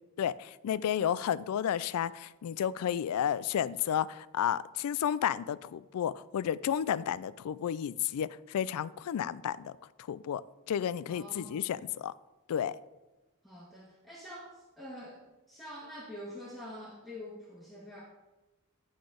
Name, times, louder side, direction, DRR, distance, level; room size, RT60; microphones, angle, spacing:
voice 1, 0.2-9.8 10.1-10.4 10.7-12.1 12.5-12.7, left 9 dB, 75° left, 19 dB, 0.3 m, -32 dB
voice 2, 11.1-11.7 13.4-15.2 15.5-18.0, equal, ahead, -6 dB, 1.3 m, -46 dB
10.0 x 4.0 x 5.0 m, 1.1 s
head